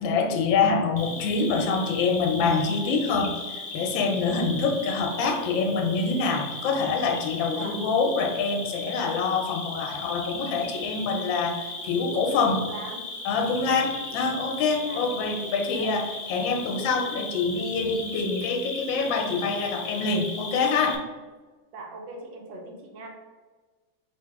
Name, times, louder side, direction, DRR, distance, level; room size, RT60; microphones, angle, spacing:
voice 1, 0.0-12.7 13.2-21.0, left 4 dB, 80° left, 4 dB, 1.3 m, -26 dB
Cricket, 1.0-21.0, left 3 dB, 60° left, 0.9 m, -37 dB
voice 2, 12.6-13.1 13.6-13.8 14.8-15.0 15.7-15.9 21.7-23.1, right 3 dB, 75° right, 1 dB, 1.4 m, -40 dB
3.4 x 2.8 x 4.5 m, 1.3 s
omnidirectional pair, 2.1 m